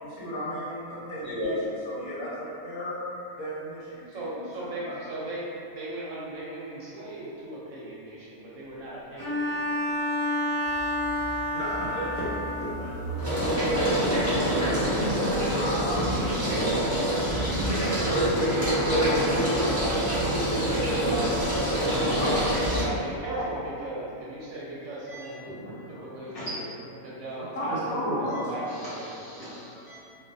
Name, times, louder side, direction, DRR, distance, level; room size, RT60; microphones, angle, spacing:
voice 1, 0.0-1.5 1.8-3.0 3.4-4.9 11.5-14.0 14.6-16.5 17.0-19.9 20.3-21.7 22.0-22.8 25.7-25.8 27.4-28.5, equal, 75° left, -8 dB, 1.2 m, -35 dB
voice 2, 1.2-1.5 25.1-25.6 26.3-26.5 26.9-27.0 28.8-30.0, equal, 45° left, -13 dB, 1.1 m, -37 dB
voice 3, 4.1-5.5 5.7-9.5 22.1-26.7 27.0-29.1, right 1 dB, 70° right, -7 dB, 0.9 m, -37 dB
Bowed string instrument, 9.2-12.9, left 1 dB, 15° left, 1.0 m, -29 dB
sound 1, 10.8-11.3 11.7-22.8, right 1 dB, 15° right, 0.5 m, -26 dB
2.4 x 2.3 x 2.6 m, 2.7 s
omnidirectional pair, 1.6 m